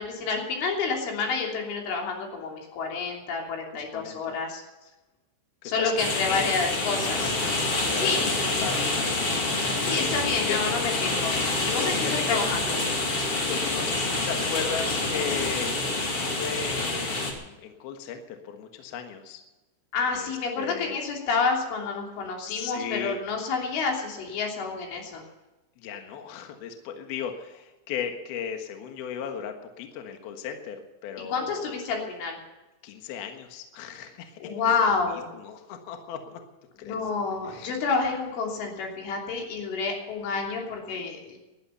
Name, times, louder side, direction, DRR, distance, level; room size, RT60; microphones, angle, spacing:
voice 1, 0.0-4.6 5.6-7.3 7.9-8.3 9.9-11.4 11.6-12.8 19.9-25.2 31.3-32.4 34.4-35.3 36.8-41.4, left 4 dB, 85° left, 0 dB, 5.6 m, -29 dB
voice 2, 3.7-4.4 5.6-6.5 7.2-7.3 7.7-8.3 8.6-8.8 10.5-10.6 12.0-12.4 13.5-19.4 20.1-21.0 22.4-23.2 25.8-31.7 32.8-34.4 34.8-34.9 35.4-36.4 36.8-37.0 37.5-37.7, left 8 dB, 65° left, 5 dB, 2.9 m, -36 dB
sound 1, 6.0-17.3, left 2 dB, 35° left, 2.8 m, -27 dB
19.5 x 11.5 x 5.6 m, 1.1 s
omnidirectional pair, 5.5 m